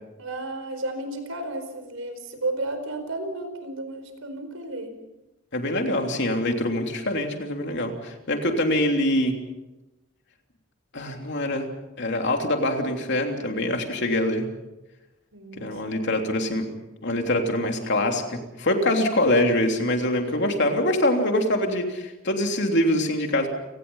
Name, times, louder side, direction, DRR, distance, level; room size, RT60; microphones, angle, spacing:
voice 1, 0.2-4.9 15.3-16.7 20.2-20.7, right 2 dB, 90° right, 8 dB, 4.6 m, -34 dB
voice 2, 5.5-9.3 10.9-11.7 12.0-14.5 15.6-16.7 17.0-23.5, left 1 dB, 55° left, 3 dB, 3.2 m, -24 dB
29.5 x 19.0 x 5.6 m, 1.0 s
head